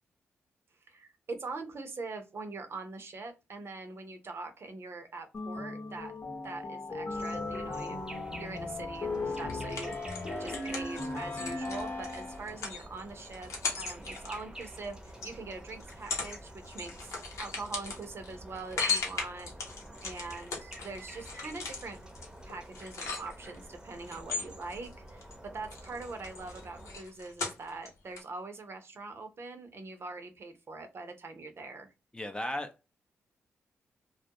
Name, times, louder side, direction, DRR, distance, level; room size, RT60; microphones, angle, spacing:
voice 1, 0.9-6.1 6.4-8.0 8.3-13.5 13.8-17.1 17.4-19.5 20.0-22.0 22.4-31.9, right 3 dB, 55° right, 0.7 m, -43 dB
sound 1, 5.3-12.6, left 2 dB, 40° left, 0.8 m, -37 dB
sound 2, 7.1-27.0, right 1 dB, 15° right, 0.8 m, -49 dB
sound 3, 9.5-15.3 15.8-16.4 16.6-23.6 24.1-25.4 25.6-27.9 28.2-28.3, left 4 dB, 75° left, 0.8 m, -38 dB
voice 2, 32.1-32.9, left 1 dB, 15° left, 0.5 m, -36 dB
2.3 x 2.0 x 2.8 m
supercardioid pair, 50°, 5 cm